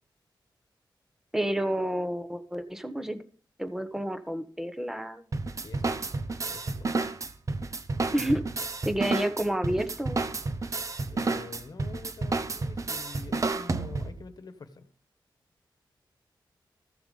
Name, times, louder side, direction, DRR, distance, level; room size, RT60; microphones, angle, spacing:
voice 1, 1.3-3.2 3.6-5.2 8.1-8.4 8.8-10.2, right 1 dB, 5° right, 9 dB, 1.2 m, -30 dB
sound 1, 5.3-14.2, right 3 dB, 40° right, 0.9 m, -31 dB
voice 2, 5.6-6.0 6.5-7.1 8.2-8.3 11.1-14.9, left 4 dB, 55° left, 10 dB, 1.3 m, -46 dB
15.0 x 6.9 x 5.4 m, 0.41 s
wide cardioid pair, 120°, 8 cm